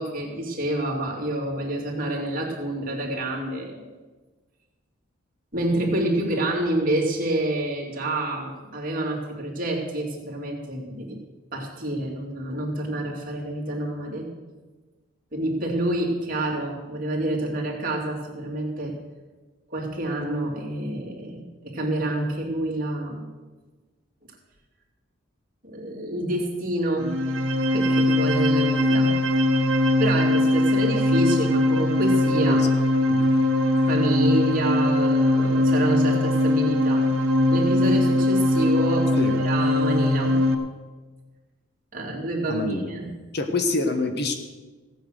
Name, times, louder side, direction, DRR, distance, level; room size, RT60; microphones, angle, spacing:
voice 1, 0.0-3.9 5.5-11.2 11.5-14.3 15.3-18.9 19.7-23.2 25.6-29.1 30.0-32.6 33.9-37.1 37.5-39.2 39.4-40.4 41.9-43.1, right 1 dB, 40° right, -1 dB, 2.6 m, -28 dB
sound 1, 27.0-40.5, left 1 dB, 70° right, 1.3 m, -21 dB
voice 2, 42.5-43.0 43.3-44.3, left 2 dB, 50° left, 6 dB, 1.2 m, -26 dB
15.5 x 9.1 x 6.4 m, 1.3 s
head